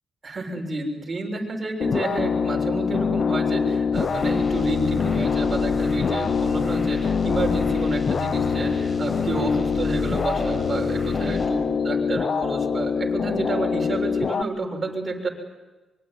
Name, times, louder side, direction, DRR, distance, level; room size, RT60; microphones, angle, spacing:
voice 1, 0.2-15.3, right 2 dB, 35° right, 1 dB, 6.7 m, -29 dB
sound 1, 1.8-14.4, left 6 dB, 50° left, 0.8 m, -24 dB
sound 2, 3.9-11.5, left 2 dB, 30° left, 6.9 m, -33 dB
24.5 x 23.5 x 9.5 m, 1.2 s
cardioid pair, 95°, 0 cm